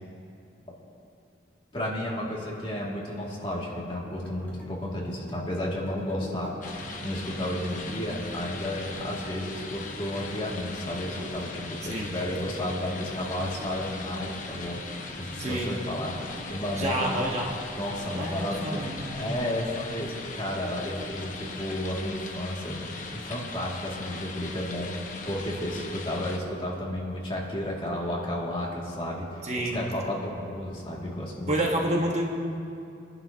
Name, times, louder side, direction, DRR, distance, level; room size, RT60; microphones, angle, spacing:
voice 1, 1.7-6.5 7.0-14.8 15.2-17.1 17.7-31.5, left 1 dB, 30° left, -4 dB, 2.3 m, -32 dB
sound 1, 4.0-21.8, equal, 10° left, 2.5 m, -48 dB
sound 2, 6.6-26.4, left 3 dB, 45° left, 1.1 m, -40 dB
voice 2, 15.4-15.8 16.7-17.5 18.1-19.4 29.4-29.8 31.5-32.2, right 1 dB, 35° right, -1 dB, 1.3 m, -29 dB
24.0 x 11.0 x 2.8 m, 2.5 s
head